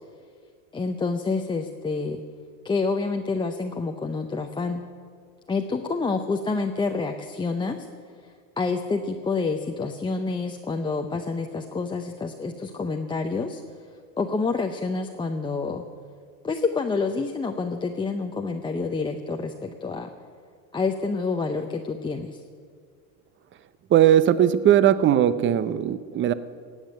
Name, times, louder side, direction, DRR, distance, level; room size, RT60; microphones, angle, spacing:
voice 1, 0.7-2.2 2.6-4.8 5.5-7.8 8.1-15.8 16.4-20.1 20.7-22.4, left 4 dB, 10° left, 3 dB, 0.6 m, -28 dB
voice 2, 23.9-26.3, right 10 dB, 30° right, 15 dB, 0.6 m, -19 dB
17.5 x 7.3 x 9.3 m, 2.1 s
supercardioid pair, 125°, 40 cm